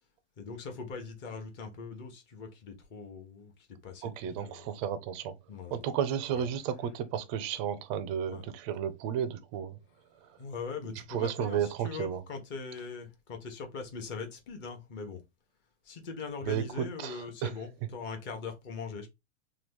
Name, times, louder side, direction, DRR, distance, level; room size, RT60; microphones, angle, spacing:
voice 1, 0.4-4.7 5.5-5.8 6.3-6.5 8.0-8.4 10.4-15.2 15.8-19.1, left 4 dB, 30° left, 1.0 m, -41 dB
voice 2, 4.0-5.3 5.7-9.8 11.1-12.2 16.4-16.6 17.0-17.5, right 9 dB, 30° right, 0.4 m, -33 dB
3.0 x 2.3 x 3.4 m
hypercardioid pair, 140°, 37 cm